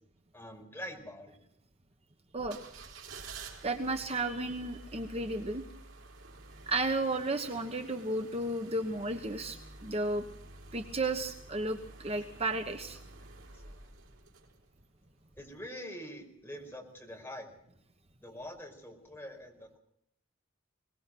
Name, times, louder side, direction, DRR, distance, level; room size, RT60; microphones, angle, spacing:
voice 1, 0.3-1.4 13.8-13.9 15.4-17.5 18.2-19.8, equal, 10° left, 2 dB, 5.3 m, -45 dB
sound 1, 2.4-14.9 15.3-15.4, right 3 dB, 75° right, 4.3 m, -50 dB
voice 2, 3.6-5.6 6.7-10.2 10.7-13.0, right 2 dB, 30° right, 6 dB, 1.2 m, -33 dB
23.0 x 20.0 x 6.1 m, 0.71 s
head